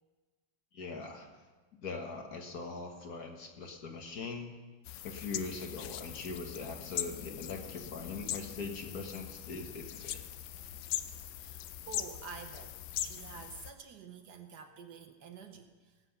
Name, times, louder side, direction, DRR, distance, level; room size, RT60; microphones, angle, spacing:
voice 1, 0.7-1.3 1.7-4.5 5.0-10.2, left 4 dB, 55° left, 3 dB, 1.7 m, -41 dB
sound 1, 4.8-13.7, left 12 dB, 75° left, 1.2 m, -41 dB
voice 2, 11.4-16.0, right 6 dB, 65° right, 6 dB, 1.3 m, -49 dB
18.5 x 7.7 x 5.7 m, 1.4 s
omnidirectional pair, 2.1 m